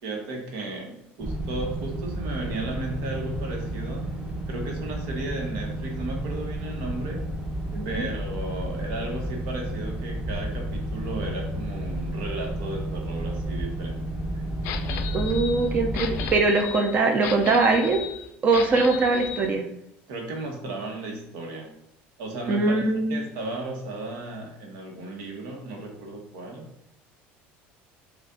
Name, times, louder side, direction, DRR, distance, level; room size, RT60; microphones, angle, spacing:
voice 1, 0.0-4.0 4.5-7.3 7.8-14.0 14.3-14.4 20.1-21.7 22.2-22.8 23.1-26.6, right 2 dB, 75° right, 1 dB, 1.2 m, -34 dB
sound 1, 1.2-16.3, right 1 dB, 15° right, 0.9 m, -31 dB
voice 2, 7.7-8.1 15.1-18.0 18.4-19.6 22.5-23.2, right 3 dB, 30° right, 4 dB, 0.5 m, -22 dB
sound 2, 14.6-19.5, left 9 dB, 60° left, 0.4 m, -35 dB
5.1 x 2.5 x 3.8 m, 0.79 s
cardioid pair, 150°, 5 cm